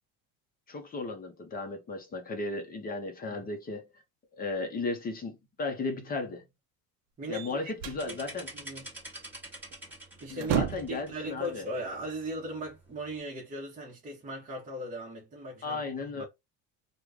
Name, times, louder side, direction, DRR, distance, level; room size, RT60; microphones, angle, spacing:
voice 1, 0.7-3.9 4.4-6.4 7.3-8.5 10.3-11.7 15.6-16.2, left 3 dB, 25° left, 0.6 m, -35 dB
voice 2, 7.2-7.6 8.0-8.2 8.5-8.9 10.2-16.3, equal, 20° right, 0.9 m, -38 dB
sound 1, 7.3-8.1 9.7-9.9 10.2-11.1, right 9 dB, 40° right, 0.5 m, -31 dB
sound 2, 8.0-13.2, right 1 dB, 5° right, 1.1 m, -48 dB
3.1 x 2.2 x 3.6 m
cardioid pair, 165°, 38 cm